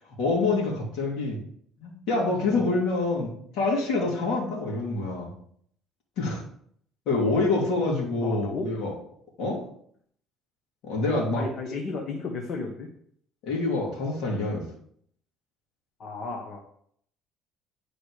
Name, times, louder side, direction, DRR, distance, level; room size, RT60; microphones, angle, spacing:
voice 1, 0.2-1.4 1.8-5.3 6.2-6.4 7.1-8.9 9.4-9.6 10.8-11.4 13.4-14.6, left 3 dB, 70° left, -2 dB, 2.8 m, -26 dB
voice 2, 8.2-8.7 11.3-12.9 16.0-16.6, left 3 dB, 45° left, 2 dB, 1.3 m, -33 dB
10.5 x 4.9 x 5.0 m, 0.64 s
cardioid pair, 125°, 0 cm